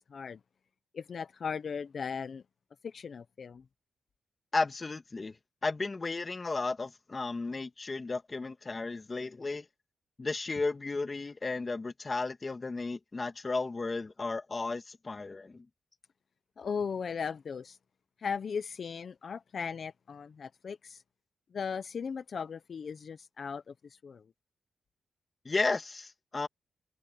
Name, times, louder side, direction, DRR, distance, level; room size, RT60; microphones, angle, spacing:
voice 1, 0.1-0.4 0.9-2.4 2.8-3.6 16.6-17.8 18.2-21.0 21.5-24.2, left 6 dB, 55° left, 0.9 m, -37 dB
voice 2, 4.5-5.4 5.6-9.7 10.2-15.7 25.4-26.5, left 3 dB, 30° left, 1.7 m, -34 dB
cardioid pair, 95°, 0 cm